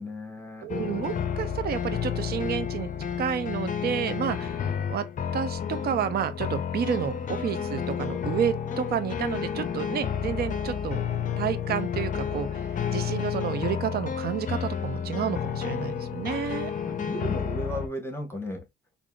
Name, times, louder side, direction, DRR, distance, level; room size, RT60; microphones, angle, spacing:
voice 1, 0.0-0.7 16.8-18.6, equal, 10° left, 0.9 m, -35 dB
voice 2, 0.6-2.9 3.2-4.6 4.9-5.1 5.3-11.0 11.4-16.7, right 9 dB, 50° right, 0.5 m, -30 dB
sound 1, 0.7-17.9, left 7 dB, 40° left, 0.5 m, -31 dB
3.4 x 2.5 x 2.2 m
cardioid pair, 90°, 20 cm